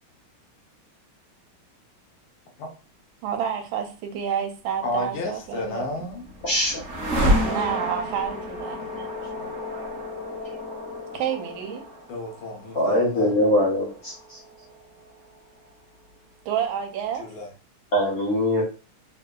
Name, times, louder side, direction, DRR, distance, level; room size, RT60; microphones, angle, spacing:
voice 1, 3.2-6.0 7.4-8.8 11.1-11.8 16.4-17.2, right 8 dB, 70° right, 1.3 m, -29 dB
voice 2, 4.8-6.2 8.8-9.5 12.1-13.4 17.2-17.5, left 2 dB, 75° left, 1.6 m, -32 dB
sound 1, 5.9-15.7, equal, 50° right, 0.8 m, -30 dB
voice 3, 6.4-6.8 12.7-14.1 17.9-18.6, left 1 dB, 55° left, 1.1 m, -22 dB
3.6 x 2.6 x 2.2 m
omnidirectional pair, 2.4 m